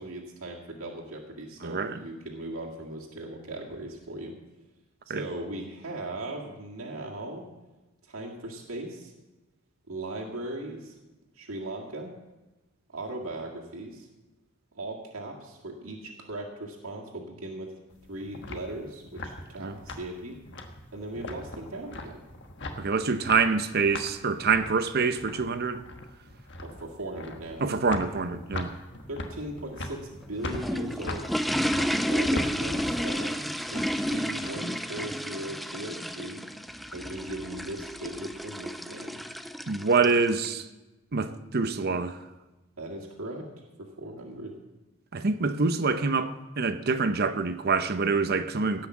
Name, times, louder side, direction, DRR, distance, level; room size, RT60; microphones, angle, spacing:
voice 1, 0.0-4.4 5.1-7.5 8.0-9.1 9.9-11.0 11.3-12.1 12.9-14.1 14.7-17.7 18.1-20.4 20.9-22.3 26.6-27.7 29.1-31.3 31.9-33.4 33.7-36.4 36.9-39.2 42.8-43.5 43.8-44.6, right 1 dB, 90° right, 2.0 m, -38 dB
voice 2, 1.6-2.0 5.1-5.2 19.6-19.7 22.8-25.8 27.6-28.7 39.7-40.6 41.1-42.2 45.1-48.9, right 4 dB, 50° right, 0.8 m, -26 dB
sound 1, 17.9-34.5, left 2 dB, 60° left, 1.3 m, -40 dB
sound 2, 30.2-40.5, equal, ahead, 0.3 m, -31 dB
17.0 x 5.9 x 7.2 m
head